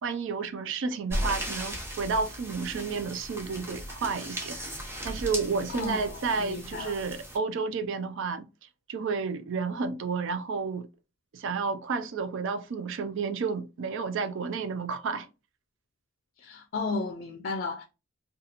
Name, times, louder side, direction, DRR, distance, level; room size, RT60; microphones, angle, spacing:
voice 1, 0.0-4.6 5.0-8.4 8.9-10.9 11.3-15.3, right 4 dB, 65° right, 0.4 m, -31 dB
sound 1, 1.1-7.4, equal, 10° right, 0.7 m, -37 dB
voice 2, 5.7-7.0 16.4-17.8, left 3 dB, 50° left, 0.4 m, -34 dB
2.8 x 2.3 x 2.4 m
head